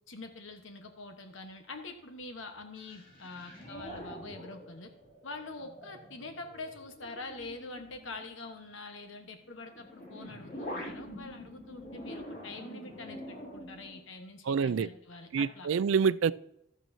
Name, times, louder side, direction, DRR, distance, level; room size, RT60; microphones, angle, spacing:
voice 1, 0.1-4.9 5.2-15.7, left 3 dB, 65° left, 1.2 m, -45 dB
sound 1, 2.8-8.6 9.5-14.0, equal, 45° left, 2.6 m, -45 dB
voice 2, 14.5-14.9 15.3-16.3, right 6 dB, 75° right, 0.4 m, -26 dB
12.0 x 9.2 x 2.7 m
head